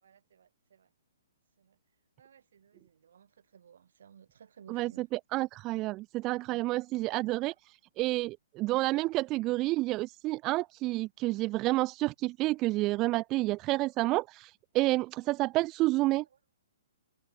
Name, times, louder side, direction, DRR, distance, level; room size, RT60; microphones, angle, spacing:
voice 1, 0.0-0.9 1.6-1.8 2.2-5.1 6.5-6.8 7.1-7.3 16.2-16.3, right 8 dB, 60° right, 5.6 m, -58 dB
voice 2, 4.7-16.2, right 19 dB, 30° right, 0.3 m, -30 dB
figure-of-eight pair, 125°, 0 cm